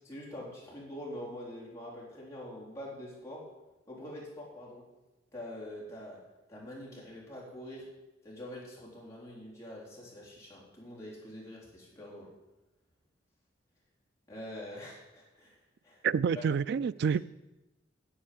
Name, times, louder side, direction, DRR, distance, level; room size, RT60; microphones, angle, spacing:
voice 1, 0.1-3.4 3.9-4.8 5.3-6.2 6.5-7.9 8.2-12.3 14.3-15.6 15.8-16.0 16.3-16.4, left 1 dB, 15° left, -5 dB, 3.9 m, -45 dB
voice 2, 16.0-17.2, right 6 dB, 60° right, 17 dB, 0.3 m, -28 dB
10.0 x 8.0 x 7.7 m, 1.0 s
head